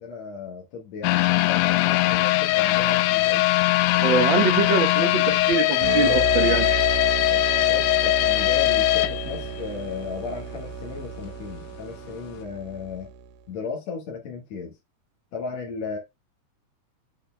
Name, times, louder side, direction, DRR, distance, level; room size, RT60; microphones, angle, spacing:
voice 1, 0.0-3.5 7.3-7.4 7.7-13.1 13.5-14.8 15.3-16.0, left 5 dB, 65° left, 2.7 m, -35 dB
sound 1, 1.0-10.0 10.4-10.5 11.0-11.1, left 17 dB, 80° left, 1.9 m, -21 dB
voice 2, 4.0-6.9, right 5 dB, 50° right, 1.5 m, -24 dB
sound 2, 5.8-13.3, right 6 dB, 90° right, 2.1 m, -32 dB
7.1 x 6.5 x 2.3 m
omnidirectional pair, 3.4 m